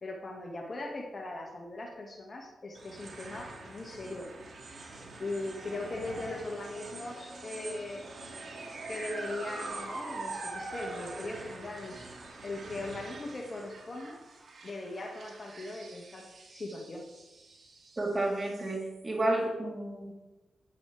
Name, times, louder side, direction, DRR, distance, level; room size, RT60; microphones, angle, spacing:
voice 1, 0.0-4.3 5.2-8.1 8.9-12.0 12.4-14.2 14.6-16.3 16.5-17.1, left 2 dB, 45° left, 1 dB, 1.9 m, -39 dB
sound 1, 2.7-19.2, right 3 dB, 60° right, 2.3 m, -44 dB
voice 2, 18.0-20.1, right 1 dB, 30° right, -2 dB, 3.5 m, -31 dB
11.5 x 9.5 x 3.4 m, 1.0 s
cardioid pair, 55°, 0 cm